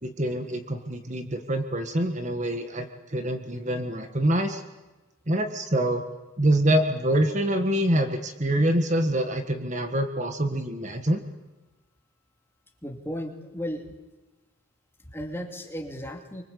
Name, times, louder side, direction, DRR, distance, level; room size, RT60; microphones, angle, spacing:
voice 1, 0.0-2.9 3.1-4.6 5.3-6.0 6.4-11.2, right 1 dB, 35° right, 6 dB, 1.6 m, -25 dB
voice 2, 12.8-13.8 15.0-16.4, equal, 10° left, 2 dB, 2.6 m, -35 dB
25.0 x 24.5 x 8.5 m, 1.1 s
head